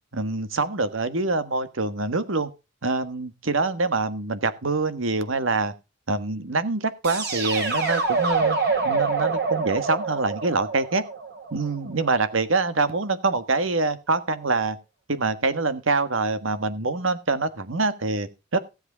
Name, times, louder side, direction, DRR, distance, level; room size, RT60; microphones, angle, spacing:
voice 1, 0.1-2.5 2.8-5.7 6.1-8.6 8.8-11.0 11.5-14.8 15.1-18.6, right 3 dB, 75° right, 11 dB, 1.5 m, -25 dB
sound 1, 7.0-12.0, right 4 dB, 55° right, 5.3 m, -26 dB
16.0 x 8.0 x 4.0 m, 0.28 s
head